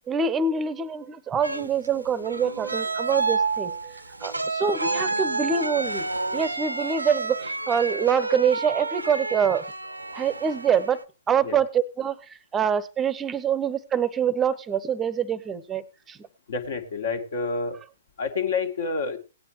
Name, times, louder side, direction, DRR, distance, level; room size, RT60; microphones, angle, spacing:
voice 1, 0.1-6.1 6.3-9.7 10.1-11.0 11.3-16.2, right 7 dB, 15° right, 18 dB, 0.8 m, -25 dB
sound 1, 1.4-11.0, right 3 dB, 80° right, 0.7 m, -29 dB
voice 2, 16.5-17.8 18.2-19.2, left 4 dB, 55° left, 7 dB, 1.8 m, -28 dB
17.5 x 9.6 x 3.1 m, 0.29 s
figure-of-eight pair, 120°, 0 cm